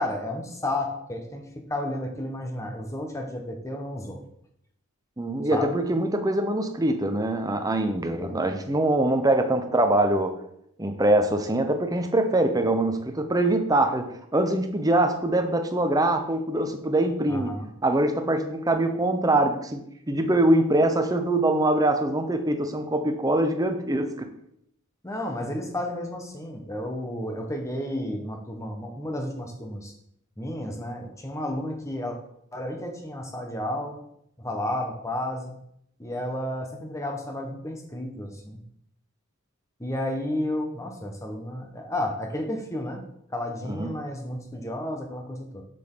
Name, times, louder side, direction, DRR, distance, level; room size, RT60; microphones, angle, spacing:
voice 1, 0.0-4.2 5.5-5.7 8.2-8.4 17.3-17.7 25.0-29.9 30.4-32.2 32.5-34.0 34.4-35.5 36.0-38.6 39.8-43.0 43.3-45.6, left 1 dB, 15° left, 3 dB, 1.2 m, -32 dB
voice 2, 5.2-10.4 10.8-17.6 17.8-24.3 43.7-43.9, right 1 dB, 15° right, 7 dB, 0.8 m, -23 dB
7.7 x 6.8 x 3.9 m, 0.73 s
head